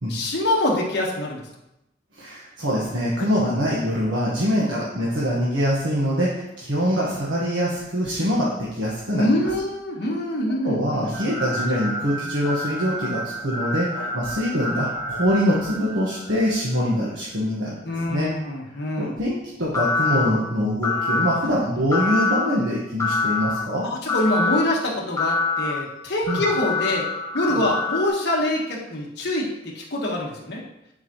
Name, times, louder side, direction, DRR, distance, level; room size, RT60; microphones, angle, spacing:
voice 1, 0.1-1.5 3.2-3.3 9.1-11.4 12.0-12.6 14.0-14.1 17.8-19.1 23.8-30.6, left 1 dB, 60° left, -2 dB, 1.5 m, -25 dB
voice 2, 2.2-9.3 10.6-17.7 18.1-18.3 19.0-23.8 26.3-26.4 27.5-27.6, equal, 80° right, -6 dB, 1.4 m, -24 dB
sound 1, 11.1-16.5 19.7-20.3 20.8-21.4 21.9-22.5 23.0-23.5 24.1-24.6 25.2-25.7 26.3-28.1, left 3 dB, 15° left, 1.1 m, -26 dB
10.0 x 4.8 x 3.1 m, 0.87 s
head